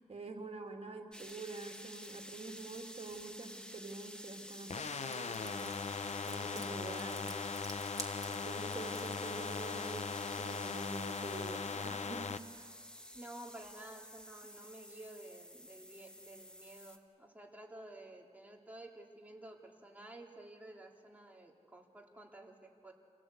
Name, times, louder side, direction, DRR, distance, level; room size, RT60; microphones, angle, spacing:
voice 1, 0.0-5.8 6.2-7.3 8.3-12.8, right 3 dB, 55° right, 2 dB, 2.8 m, -47 dB
sound 1, 1.1-17.0, equal, 5° left, 1.6 m, -50 dB
sound 2, 4.7-12.4, left 5 dB, 70° left, 0.8 m, -39 dB
sound 3, 5.1-9.3, right 2 dB, 30° right, 2.2 m, -48 dB
voice 2, 13.1-22.9, right 1 dB, 15° right, 0 dB, 3.0 m, -52 dB
27.0 x 17.5 x 8.3 m, 2.4 s
wide cardioid pair, 90°, 12 cm